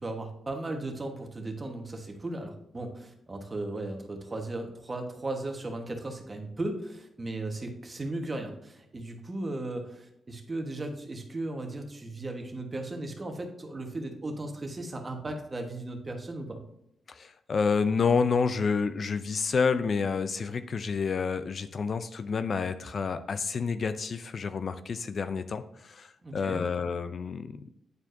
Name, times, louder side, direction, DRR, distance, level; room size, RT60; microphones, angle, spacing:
voice 1, 0.0-16.6 26.2-26.6, right 2 dB, 30° right, 4 dB, 1.2 m, -36 dB
voice 2, 17.1-27.5, left 5 dB, 50° left, 12 dB, 0.4 m, -29 dB
9.4 x 4.5 x 2.6 m, 0.79 s
cardioid pair, 95°, 0 cm